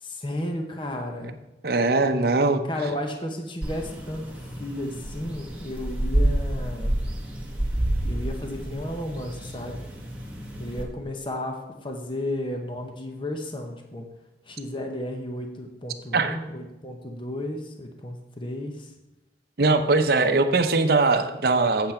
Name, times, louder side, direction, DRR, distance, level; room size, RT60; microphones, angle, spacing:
voice 1, 0.0-1.4 2.7-7.0 8.0-9.9 10.6-14.1 14.5-18.9, left 1 dB, 25° left, 3 dB, 0.9 m, -33 dB
voice 2, 1.6-2.6 16.1-16.4 19.6-21.9, right 3 dB, 55° right, 7 dB, 0.7 m, -21 dB
sound 1, 3.6-10.8, right 1 dB, 5° right, 1.3 m, -29 dB
7.9 x 7.8 x 4.3 m, 0.98 s
head